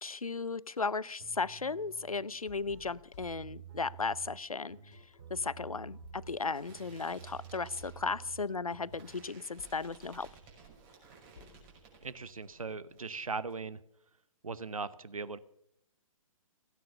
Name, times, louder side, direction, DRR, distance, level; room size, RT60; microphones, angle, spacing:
voice 1, 0.0-4.8 5.3-10.3, left 4 dB, 85° left, 0.6 m, -35 dB
sound 1, 1.2-9.1, right 8 dB, 50° right, 2.5 m, -51 dB
sound 2, 2.5-4.2 4.5-13.1, left 6 dB, 55° left, 2.0 m, -60 dB
sound 3, 4.9-12.6 12.9-13.6, right 5 dB, 25° right, 6.0 m, -58 dB
voice 2, 12.0-13.8 14.4-15.4, right 4 dB, 75° right, 0.9 m, -39 dB
17.5 x 9.4 x 6.8 m
figure-of-eight pair, 125°, 18 cm